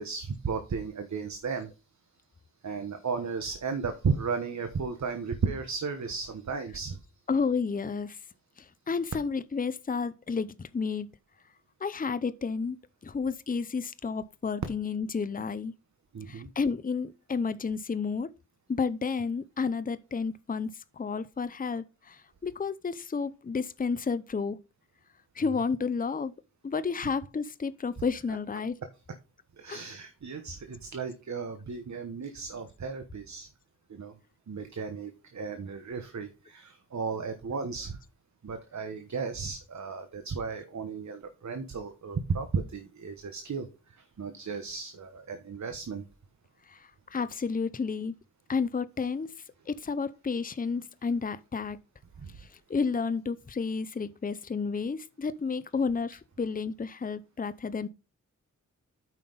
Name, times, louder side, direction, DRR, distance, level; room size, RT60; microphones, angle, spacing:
voice 1, 0.0-1.7 2.6-7.0 16.1-16.5 29.6-33.5 33.9-34.1 34.5-38.0 38.4-46.0 52.2-52.3, right 5 dB, 60° right, 1.1 m, -34 dB
voice 2, 7.3-8.2 8.6-11.1 11.8-12.8 13.0-15.7 16.3-18.3 18.7-24.6 25.4-26.3 26.6-28.8 29.7-29.8 46.7-48.1 48.5-49.3 49.7-51.8 52.4-57.9, left 5 dB, 25° left, 0.6 m, -31 dB
9.1 x 5.8 x 3.9 m
cardioid pair, 60°, 31 cm